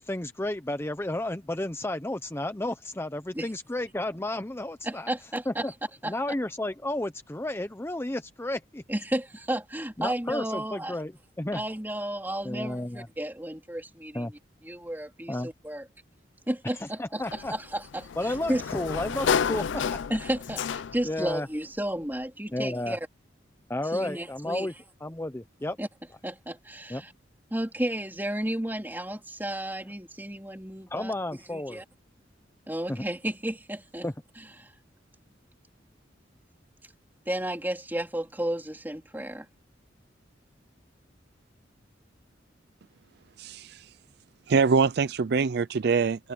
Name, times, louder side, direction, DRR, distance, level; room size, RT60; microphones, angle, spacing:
voice 1, 0.0-5.1 5.5-5.7 6.0-8.8 10.0-11.6 12.4-13.1 14.1-14.3 15.3-15.5 16.8-17.5 18.2-20.2 21.0-21.5 22.5-23.0 23.7-24.7 25.0-25.8 26.9-27.1 30.9-31.8 32.9-33.0 34.0-34.1, left 1 dB, 15° left, 0.7 m, -32 dB
voice 2, 4.8-5.6 6.0-6.1 8.9-10.9 11.5-14.3 14.6-15.8 16.5-18.6 20.1-23.0 23.9-24.7 25.8-25.9 26.2-27.1 27.5-31.1 31.5-31.8 32.7-34.1 34.6-34.7 37.3-39.5, right 1 dB, 10° right, 3.1 m, -33 dB
Sliding door, 17.3-21.2, left 7 dB, 80° left, 0.4 m, -30 dB
voice 3, 43.4-43.9 44.5-46.3, right 5 dB, 60° right, 0.4 m, -24 dB
head